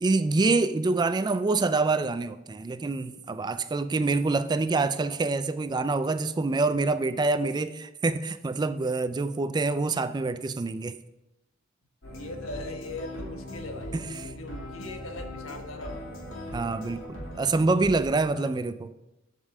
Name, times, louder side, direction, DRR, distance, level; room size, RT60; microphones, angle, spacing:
voice 1, 0.0-11.0 13.9-14.0 16.5-18.9, right 3 dB, 20° right, 0.3 m, -26 dB
sound 1, 12.0-18.1, left 1 dB, 70° left, 2.5 m, -40 dB
voice 2, 12.1-16.1 18.3-18.5, left 2 dB, 85° left, 1.3 m, -40 dB
8.1 x 5.4 x 6.5 m
head